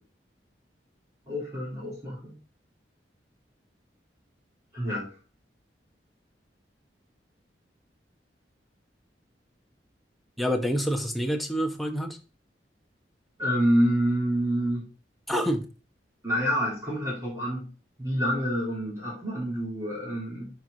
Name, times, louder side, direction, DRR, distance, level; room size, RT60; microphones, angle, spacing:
voice 1, 1.3-2.3 4.7-5.2 13.4-14.9 16.2-17.7 18.0-20.5, equal, 15° right, 3.6 m, -27 dB
voice 2, 10.4-12.2 15.3-15.7, equal, ahead, 1.1 m, -27 dB
10.0 x 4.8 x 3.9 m
head